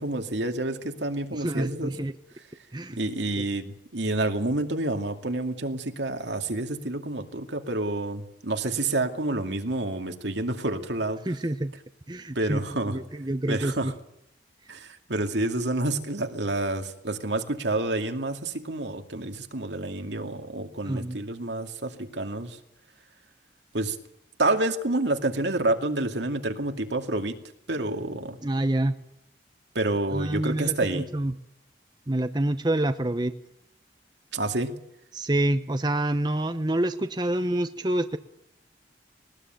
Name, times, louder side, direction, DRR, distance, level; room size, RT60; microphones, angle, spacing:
voice 1, 0.0-1.9 2.9-11.2 12.3-13.0 13.5-13.9 14.7-22.6 23.7-24.0 24.4-27.4 27.7-28.4 29.7-31.1 34.3-34.7, right 2 dB, 75° right, 5 dB, 2.4 m, -28 dB
voice 2, 1.3-2.1 2.7-3.0 3.4-3.5 11.2-11.7 12.1-13.9 20.8-21.2 28.4-29.0 30.1-31.3 32.1-33.3 35.1-38.2, right 1 dB, 25° right, 9 dB, 0.8 m, -27 dB
20.5 x 19.5 x 9.1 m, 0.83 s
head